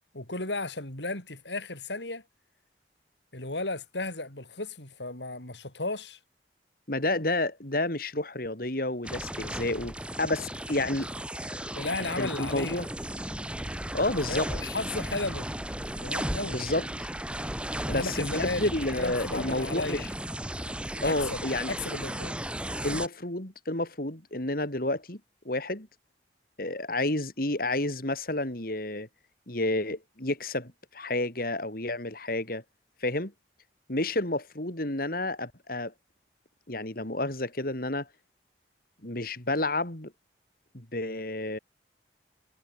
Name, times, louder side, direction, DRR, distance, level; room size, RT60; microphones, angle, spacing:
voice 1, 0.1-2.2 3.3-6.2 7.1-7.2 11.7-12.8 14.3-15.5 16.0-16.6 17.9-20.1 21.0-22.4, left 2 dB, 85° left, 7.3 m, -34 dB
voice 2, 6.9-11.1 12.2-12.9 13.9-14.5 16.5-16.8 17.9-20.1 21.0-21.7 22.8-25.2 25.5-25.9 26.6-29.1 29.5-32.6 33.0-33.3 33.9-35.9 36.7-38.1 39.0-40.1 40.7-41.6, left 2 dB, 55° left, 3.7 m, -30 dB
sound 1, 9.0-23.1, right 1 dB, 5° right, 4.7 m, -35 dB
head